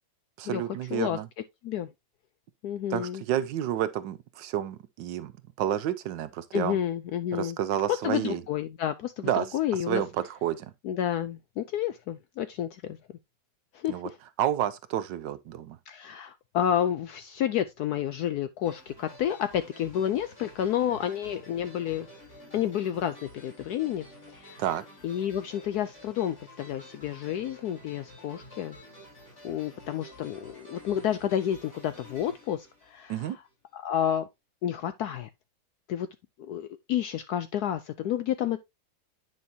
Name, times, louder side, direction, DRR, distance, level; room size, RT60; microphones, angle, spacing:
voice 1, 0.4-1.3 2.9-5.3 5.6-6.8 7.3-8.4 9.2-9.5 9.9-10.7 13.9-14.1 14.4-15.8 24.6-24.8 33.1-33.4, right 11 dB, 75° right, 1.3 m, -30 dB
voice 2, 2.6-3.2 6.5-7.6 8.0-10.0 10.8-13.0 13.7-14.2 15.9-22.1 22.5-24.1 24.3-24.6 25.0-28.8 29.4-33.4 33.7-34.2 34.6-35.3 35.9-36.1 36.4-38.6, left 10 dB, 75° left, 0.9 m, -30 dB
sound 1, 18.6-33.5, left 1 dB, 35° left, 4.4 m, -50 dB
9.4 x 5.4 x 2.7 m
omnidirectional pair, 2.1 m